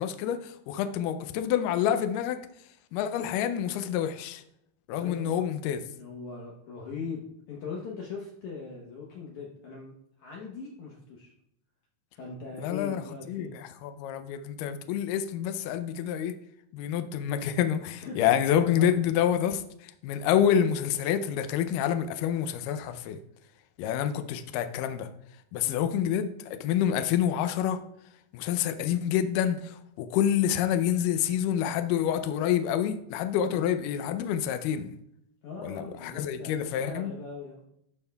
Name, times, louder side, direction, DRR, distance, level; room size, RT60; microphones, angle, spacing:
voice 1, 0.0-2.4 2.9-4.4 4.9-5.8 12.5-13.0 13.3-16.3 16.7-23.2 23.8-25.1 25.5-27.8 28.3-34.9 35.6-37.1, left 9 dB, 90° left, 9 dB, 1.9 m, -27 dB
voice 2, 5.0-5.5 5.9-11.3 12.1-13.5 18.0-18.9 25.6-25.9 33.4-33.6 35.4-37.6, left 4 dB, 70° left, -2 dB, 1.9 m, -40 dB
12.0 x 5.4 x 2.3 m, 0.74 s
omnidirectional pair, 4.4 m